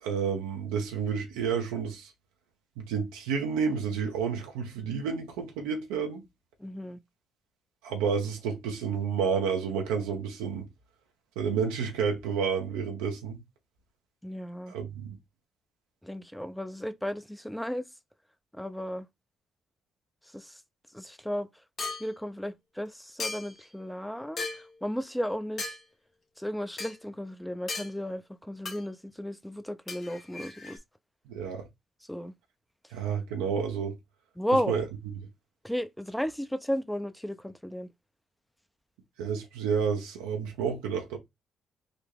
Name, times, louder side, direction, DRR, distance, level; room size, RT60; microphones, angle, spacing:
voice 1, 0.0-2.1 2.8-6.2 7.8-10.6 11.4-13.4 14.7-15.2 31.3-31.7 32.9-34.0 34.7-34.8 39.2-41.2, right 6 dB, 85° right, 0.8 m, -30 dB
voice 2, 6.6-7.0 14.2-14.7 16.0-17.8 18.5-19.1 20.3-20.6 20.9-21.5 22.0-25.8 26.4-30.8 32.1-32.3 34.4-34.8 35.6-37.9, equal, 5° left, 0.6 m, -34 dB
sound 1, 21.8-22.1 23.2-23.6 24.4-24.7 25.6-25.8 26.8-26.9 27.7-27.9 28.7-28.8 29.9-30.8, left 3 dB, 55° left, 1.0 m, -36 dB
3.9 x 2.2 x 3.4 m
hypercardioid pair, 50°, 0 cm